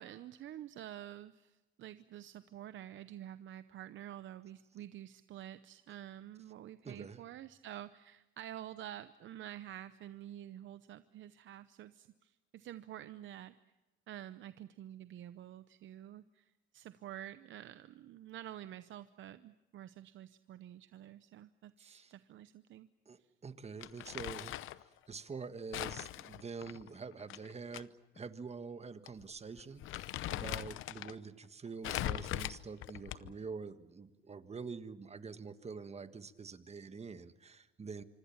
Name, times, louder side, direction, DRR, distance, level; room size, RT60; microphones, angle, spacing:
voice 1, 0.0-13.5 14.1-22.9, right 12 dB, 75° right, 13 dB, 0.8 m, -49 dB
voice 2, 6.8-7.2 21.8-22.1 23.1-24.5 25.1-27.9 28.1-38.0, right 5 dB, 30° right, 11 dB, 1.5 m, -46 dB
Crumpling crinkling, 23.8-24.8 25.7-27.8 28.2-28.3 29.1-29.2 29.6-31.1 31.8-33.4, left 14 dB, 90° left, 0.8 m, -40 dB
25.5 x 25.5 x 7.3 m, 1.1 s
cardioid pair, 90°, 20 cm